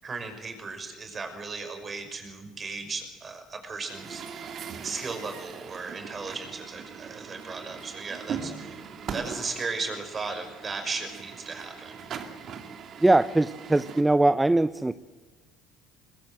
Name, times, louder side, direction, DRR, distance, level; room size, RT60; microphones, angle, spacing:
voice 1, 0.0-12.1, right 4 dB, 30° right, 6 dB, 5.5 m, -36 dB
Truck, 3.8-14.0, right 6 dB, 50° right, 2.5 m, -40 dB
voice 2, 13.0-15.0, right 2 dB, 10° right, 14 dB, 0.7 m, -21 dB
21.5 x 21.0 x 8.0 m, 1.4 s
supercardioid pair, 90°, 0 cm